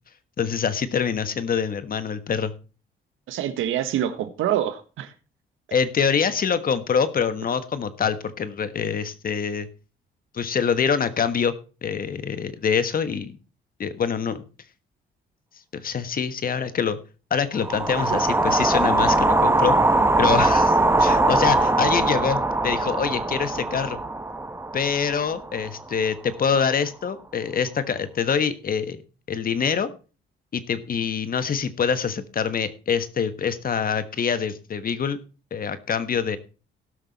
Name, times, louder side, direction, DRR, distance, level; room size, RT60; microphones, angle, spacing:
voice 1, 0.4-2.5 5.7-9.7 10.3-11.5 11.8-13.4 13.8-14.4 15.7-17.0 17.3-19.8 20.2-24.0 24.7-29.0 29.3-29.9 30.5-35.2 35.5-36.4, left 6 dB, 45° left, 12 dB, 1.4 m, -25 dB
voice 2, 3.3-5.1 18.1-18.2, right 11 dB, 85° right, 10 dB, 1.3 m, -26 dB
sound 1, 17.6-25.8, right 2 dB, 10° right, 1.5 m, -21 dB
17.5 x 6.2 x 4.2 m, 0.34 s
cardioid pair, 90°, 20 cm